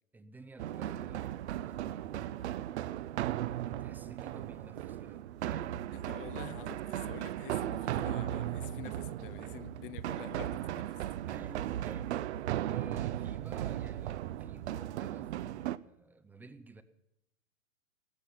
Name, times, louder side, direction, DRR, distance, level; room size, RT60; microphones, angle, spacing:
voice 1, 0.1-2.8 3.6-5.7 11.3-12.2 12.5-16.8, right 3 dB, 5° right, 0.5 m, -53 dB
sound 1, 0.6-15.8, right 12 dB, 55° right, 0.7 m, -36 dB
voice 2, 5.9-11.0, left 15 dB, 40° left, 0.7 m, -48 dB
16.5 x 13.5 x 5.8 m
hypercardioid pair, 120°, 40 cm